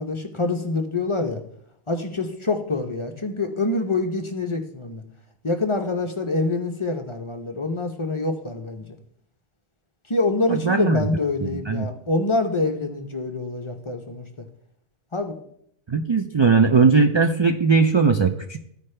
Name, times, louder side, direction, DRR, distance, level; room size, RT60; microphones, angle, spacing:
voice 1, 0.0-1.4 1.9-5.0 5.4-8.9 10.1-14.2 15.1-15.4, left 3 dB, 30° left, 5 dB, 0.7 m, -25 dB
voice 2, 10.5-11.0 11.5-11.9 15.9-18.7, right 4 dB, 50° right, 6 dB, 0.3 m, -19 dB
14.5 x 5.0 x 3.3 m, 0.71 s
omnidirectional pair, 1.2 m